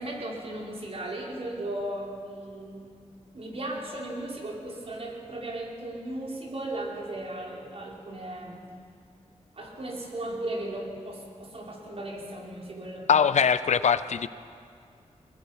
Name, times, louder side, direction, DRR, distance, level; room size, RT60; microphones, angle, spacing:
voice 1, 0.0-2.9 3.3-8.7 9.5-13.1, right 1 dB, 50° right, -2 dB, 4.4 m, -36 dB
voice 2, 13.1-14.3, left 7 dB, 70° left, 14 dB, 0.6 m, -22 dB
21.5 x 21.0 x 5.7 m, 2.3 s
cardioid pair, 70°, 12 cm